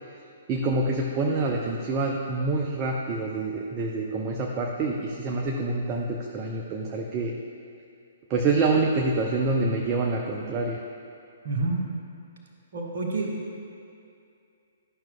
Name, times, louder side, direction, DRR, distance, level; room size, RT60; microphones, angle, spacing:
voice 1, 0.5-7.3 8.3-10.8, right 3 dB, 30° right, -1 dB, 0.5 m, -26 dB
voice 2, 11.4-11.8 12.7-13.3, right 3 dB, 55° right, -1 dB, 1.1 m, -28 dB
11.0 x 5.8 x 2.2 m, 2.5 s
figure-of-eight pair, 125°, 0 cm